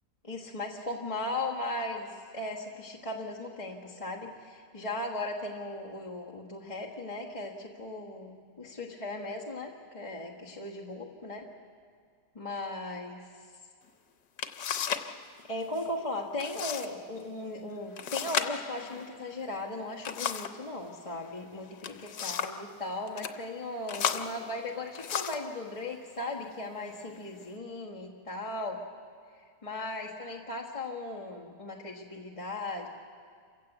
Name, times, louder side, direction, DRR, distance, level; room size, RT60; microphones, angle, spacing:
voice 1, 0.2-11.5 12.3-13.3 15.5-28.8 29.6-32.9, left 2 dB, 20° left, -4 dB, 1.3 m, -37 dB
sound 1, 13.9-14.0 14.4-15.1 15.4-15.9 16.4-16.9 17.2-17.3 18.0-20.6 21.6-22.7 23.1-23.4 23.9-25.5 26.3-26.5 27.0-27.5, left 8 dB, 75° left, 1.5 m, -34 dB
28.0 x 16.0 x 8.1 m, 2.1 s
omnidirectional pair, 1.8 m